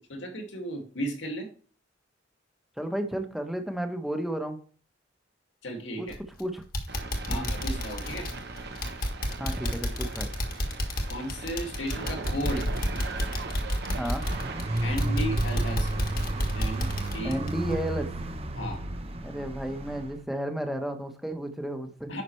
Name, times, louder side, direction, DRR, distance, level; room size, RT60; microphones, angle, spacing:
voice 1, 0.1-1.5 5.6-6.2 7.3-8.3 10.0-10.1 11.1-12.7 14.8-16.1 16.6-17.4 18.5-18.8 22.1-22.2, equal, 75° left, 2 dB, 2.2 m, -35 dB
voice 2, 2.8-4.6 6.0-6.1 6.4-6.6 7.3-7.5 9.4-10.3 14.0-14.3 17.2-18.1 19.2-22.1, right 1 dB, ahead, 5 dB, 1.1 m, -32 dB
sound 1, 6.1-6.4 6.7-18.3 18.6-18.8 19.2-19.3, equal, 50° left, 1.5 m, -31 dB
sound 2, 6.9-17.2, right 4 dB, 60° right, 0.9 m, -41 dB
sound 3, 14.2-20.1, right 2 dB, 35° right, 0.8 m, -32 dB
9.9 x 5.8 x 3.2 m, 0.42 s
head